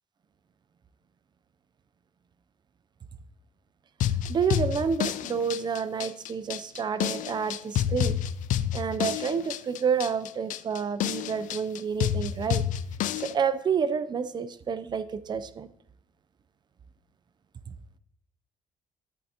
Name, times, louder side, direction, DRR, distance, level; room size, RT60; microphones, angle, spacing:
sound 1, 4.0-13.3, left 11 dB, 70° left, 0.4 m, -29 dB
voice 1, 4.3-8.2 8.7-12.6 13.2-15.7, right 6 dB, 30° right, 0.5 m, -29 dB
11.0 x 8.3 x 2.8 m
cardioid pair, 140°, 14 cm